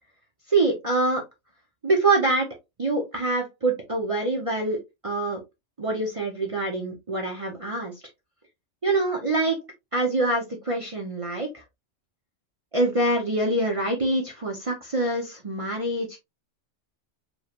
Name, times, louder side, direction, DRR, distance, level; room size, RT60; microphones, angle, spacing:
voice 1, 0.5-1.2 1.8-2.5 2.8-5.4 5.8-7.9 8.8-9.6 9.9-11.6 12.7-16.2, right 2 dB, 30° right, 0.8 m, -25 dB
4.7 x 3.2 x 2.4 m
omnidirectional pair, 1.3 m